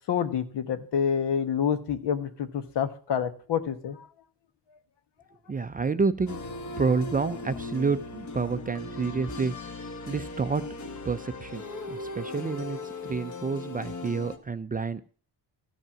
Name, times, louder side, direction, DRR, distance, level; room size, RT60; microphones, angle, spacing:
voice 1, 0.1-4.1, left 8 dB, 75° left, 10 dB, 1.3 m, -28 dB
voice 2, 5.5-6.5 6.8-9.5 10.1-10.6 11.0-15.0, right 4 dB, 20° right, 11 dB, 0.4 m, -29 dB
sound 1, 6.3-14.4, left 3 dB, 45° left, 1.3 m, -38 dB
13.5 x 5.4 x 7.3 m, 0.43 s
cardioid pair, 115°, 42 cm